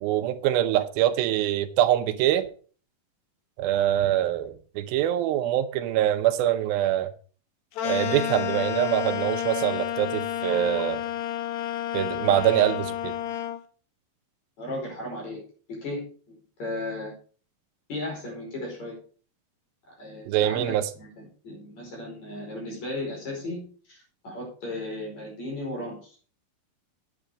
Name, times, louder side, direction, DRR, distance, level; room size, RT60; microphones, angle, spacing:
voice 1, 0.0-2.5 3.6-7.1 7.8-11.0 11.9-13.2 20.3-20.9, right 12 dB, 85° right, 2.6 m, -24 dB
sound 1, 7.8-13.6, left 11 dB, 70° left, 1.8 m, -30 dB
voice 2, 14.6-15.4 15.7-16.0 16.6-17.1 17.9-18.9 19.9-24.0 24.2-26.2, left 1 dB, 50° left, 6.1 m, -35 dB
9.2 x 8.3 x 5.0 m
omnidirectional pair, 4.2 m